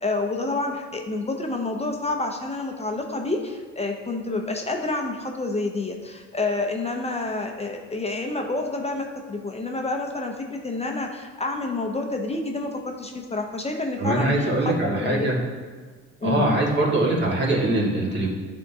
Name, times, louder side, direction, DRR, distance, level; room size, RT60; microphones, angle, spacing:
voice 1, 0.0-15.3 16.2-16.4, left 2 dB, 20° left, 2 dB, 0.6 m, -28 dB
voice 2, 14.0-15.4 16.2-18.3, right 1 dB, 35° right, -3 dB, 1.7 m, -22 dB
10.5 x 3.6 x 2.7 m, 1.5 s
cardioid pair, 90°, 30 cm